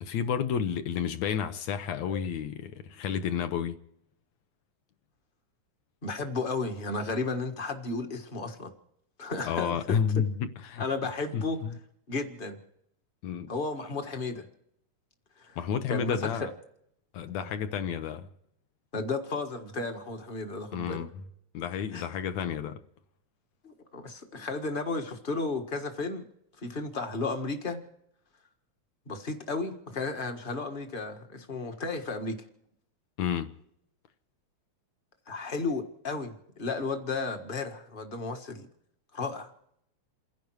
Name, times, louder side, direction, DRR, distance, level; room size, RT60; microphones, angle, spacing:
voice 1, 0.0-3.8 9.4-10.8 11.3-11.8 13.2-13.5 15.6-16.5 17.1-18.3 20.7-21.1 21.5-22.8 33.2-33.5, left 7 dB, 70° left, 2.0 m, -31 dB
voice 2, 6.0-8.7 9.2-10.0 10.8-11.6 12.1-12.6 13.5-14.5 15.4-15.6 15.9-16.5 18.9-21.1 21.9-22.1 23.6-26.2 26.6-27.8 29.1-32.4 35.3-38.7 39.1-39.5, left 3 dB, 35° left, 0.9 m, -33 dB
29.0 x 10.5 x 4.7 m
omnidirectional pair, 3.5 m